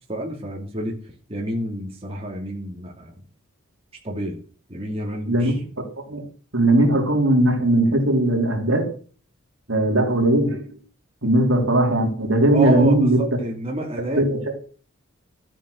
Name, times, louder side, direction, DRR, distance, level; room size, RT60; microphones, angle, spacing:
voice 1, 0.1-1.0 1.3-3.1 4.0-4.4 4.7-5.6 12.5-14.2, right 1 dB, 30° right, -1 dB, 2.7 m, -29 dB
voice 2, 5.3-6.2 6.5-8.9 9.7-10.6 11.2-13.2 14.2-14.6, right 1 dB, 65° right, 2 dB, 3.7 m, -19 dB
13.0 x 9.1 x 6.5 m, 0.41 s
head